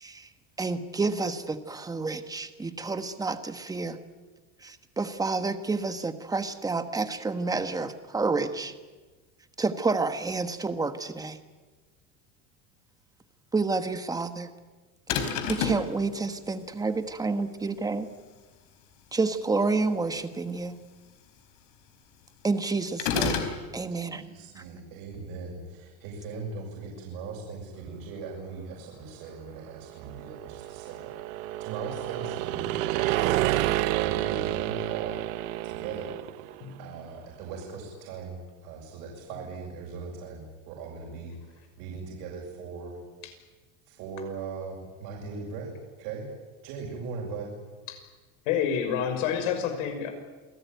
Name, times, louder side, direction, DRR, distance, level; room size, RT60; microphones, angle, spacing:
voice 1, 0.6-4.0 4.6-8.7 9.6-11.4 13.5-14.5 15.5-18.1 19.1-20.8 22.4-24.2, right 3 dB, 10° right, 9 dB, 1.3 m, -29 dB
sound 1, 15.1-15.9 23.0-23.6, left 6 dB, 55° left, 4.3 m, -27 dB
voice 2, 23.9-32.8 33.1-35.2 35.6-36.5 36.8-43.0 43.9-45.7 46.0-46.3 46.6-47.6, right 4 dB, 65° right, -2 dB, 7.0 m, -39 dB
sound 2, 29.7-36.7, right 16 dB, 90° right, 1.1 m, -29 dB
voice 3, 48.5-50.1, left 8 dB, 75° left, 6 dB, 6.0 m, -28 dB
28.0 x 19.0 x 9.3 m, 1.3 s
cardioid pair, 165°, 39 cm